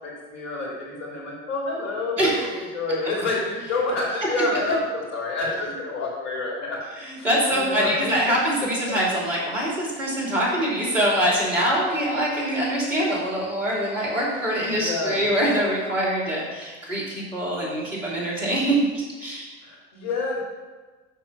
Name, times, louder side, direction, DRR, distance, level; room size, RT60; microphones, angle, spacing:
voice 1, 0.0-6.8 7.2-7.3 7.5-8.4 8.9-9.0 14.7-15.2 19.6-20.4, left 3 dB, 45° left, -2 dB, 3.0 m, -28 dB
voice 2, 2.2-2.5 7.0-19.5, right 1 dB, 85° right, -7 dB, 3.0 m, -24 dB
7.1 x 6.5 x 5.6 m, 1.3 s
figure-of-eight pair, 65°, 37 cm